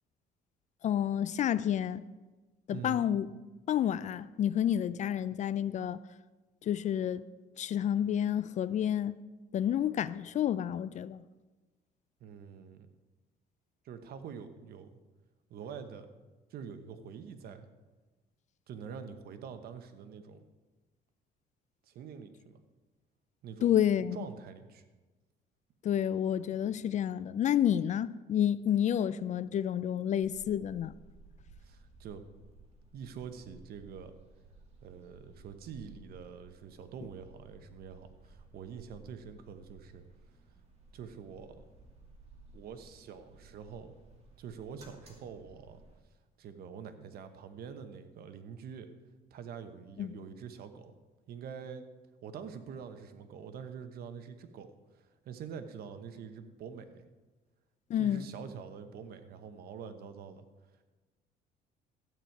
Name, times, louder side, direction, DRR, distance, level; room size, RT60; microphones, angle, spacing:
voice 1, 0.8-2.0 2.7-3.3 3.7-6.0 6.6-7.2 7.6-9.1 9.5-11.2 23.6-24.2 25.8-30.9 50.0-50.2 57.9-58.3, left 10 dB, 45° left, 0.4 m, -29 dB
voice 2, 2.7-3.1 12.2-12.9 13.8-15.0 15.5-16.1 16.5-17.7 18.7-20.4 21.8-22.6 23.4-23.7 24.1-24.8 31.6-32.2 32.9-34.1 34.8-40.0 40.9-41.6 42.5-44.0 44.4-45.8 46.4-48.9 49.3-51.0 51.3-51.9 52.2-57.1 57.9-60.4, right 7 dB, 65° right, 1.0 m, -45 dB
sound 1, 30.2-46.0, right 2 dB, 40° right, 2.4 m, -57 dB
12.5 x 8.9 x 4.6 m
cardioid pair, 110°, 17 cm